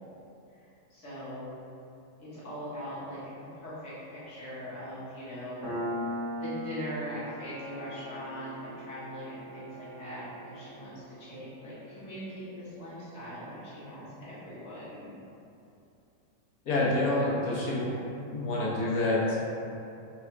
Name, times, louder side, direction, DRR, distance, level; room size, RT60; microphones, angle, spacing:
voice 1, 0.9-1.5 2.2-3.2 3.5-6.0 6.3-15.1, equal, 55° left, -11 dB, 1.6 m, -41 dB
Piano, 5.6-12.8, equal, 10° right, 1.1 m, -40 dB
voice 2, 16.7-17.9 18.3-19.4, left 2 dB, 80° left, -6 dB, 1.3 m, -27 dB
3.4 x 2.4 x 4.3 m, 2.7 s
omnidirectional pair, 1.5 m